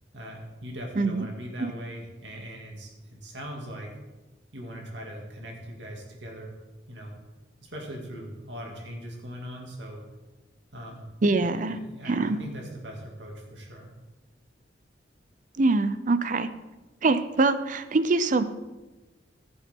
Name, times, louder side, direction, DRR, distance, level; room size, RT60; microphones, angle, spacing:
voice 1, 0.1-3.9 4.5-6.5 6.9-7.1 7.6-10.0 10.7-13.9, equal, 80° right, 0 dB, 2.2 m, -40 dB
voice 2, 1.0-1.3 1.6-1.7 11.2-11.8 12.1-12.4 15.6-16.5 17.0-18.4, right 3 dB, 45° right, 12 dB, 0.5 m, -24 dB
15.0 x 7.0 x 3.7 m, 1.1 s
head